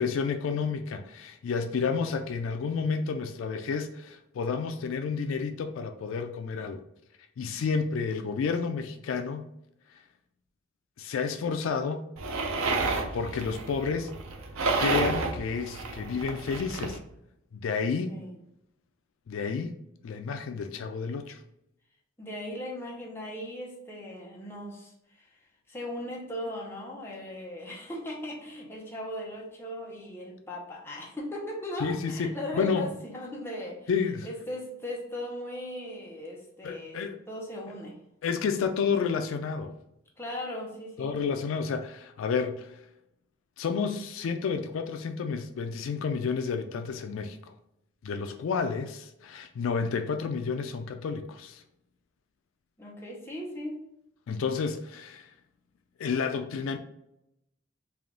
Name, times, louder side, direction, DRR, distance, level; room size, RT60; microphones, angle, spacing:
voice 1, 0.0-6.8 7.4-9.4 11.0-12.0 13.1-14.1 14.8-17.0 17.5-18.2 19.3-19.7 20.0-21.4 31.8-32.9 33.9-34.3 36.6-37.2 38.2-39.7 41.0-42.8 43.6-47.5 48.0-51.6 54.3-55.3 56.0-56.8, left 5 dB, 75° left, 0.3 m, -30 dB
sound 1, 12.2-17.0, right 3 dB, 90° right, 0.5 m, -31 dB
voice 2, 18.1-18.4 22.2-25.4 25.7-33.9 34.2-38.0 40.2-41.2 52.8-53.8, left 1 dB, 10° left, 0.7 m, -38 dB
3.4 x 2.5 x 3.7 m
head